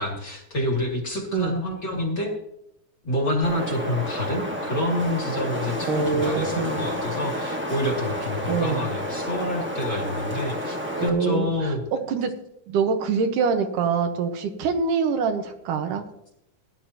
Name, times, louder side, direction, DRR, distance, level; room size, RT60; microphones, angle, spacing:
voice 1, 0.0-2.3 3.0-11.8, left 1 dB, 35° left, 0 dB, 3.0 m, -28 dB
Wind, 3.4-11.1, equal, 15° right, 0.4 m, -30 dB
voice 2, 5.8-6.8 8.5-8.9 10.9-12.3 12.7-16.0, right 5 dB, 85° right, 6 dB, 2.8 m, -25 dB
17.5 x 11.5 x 2.9 m, 0.78 s
omnidirectional pair, 3.6 m